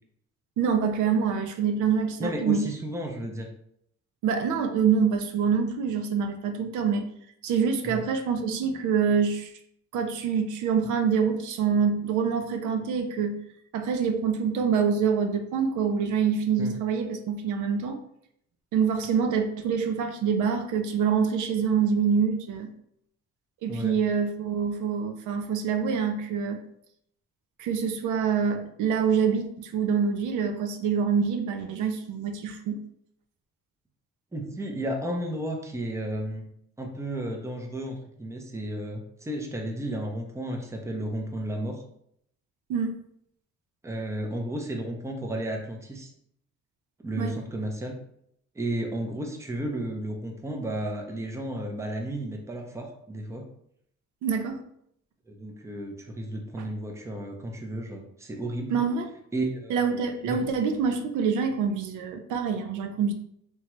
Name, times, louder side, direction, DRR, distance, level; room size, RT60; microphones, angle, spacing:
voice 1, 0.6-2.7 4.2-7.1 7.4-9.5 9.9-13.4 13.7-18.0 18.7-22.7 23.6-26.6 27.6-32.8 42.7-43.0 47.2-47.4 54.2-54.6 58.7-59.1 59.7-63.1, right 6 dB, 80° right, 6 dB, 0.5 m, -26 dB
voice 2, 2.2-3.5 7.8-8.0 16.6-16.8 23.7-24.0 34.3-36.5 36.8-41.8 43.8-46.1 47.0-48.0 48.5-53.5 55.3-58.7 59.3-59.8 60.3-60.4, right 1 dB, 10° right, 2 dB, 0.5 m, -33 dB
2.9 x 2.3 x 3.0 m, 0.71 s
cardioid pair, 90°, 30 cm